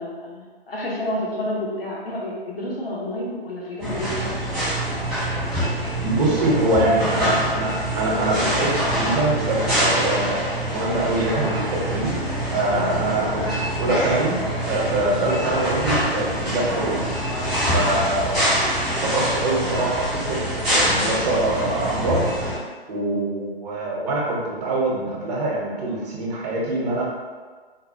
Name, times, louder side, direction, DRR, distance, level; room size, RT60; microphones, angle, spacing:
voice 1, 0.0-4.5, left 1 dB, 65° left, -4 dB, 1.1 m, -30 dB
sound 1, 3.8-22.6, equal, ahead, 0.4 m, -25 dB
voice 2, 6.0-12.2 12.5-14.4 14.6-17.0 17.7-22.3 22.9-27.0, right 2 dB, 40° right, -3 dB, 0.9 m, -24 dB
3.9 x 2.2 x 2.7 m, 1.5 s
figure-of-eight pair, 130°, 31 cm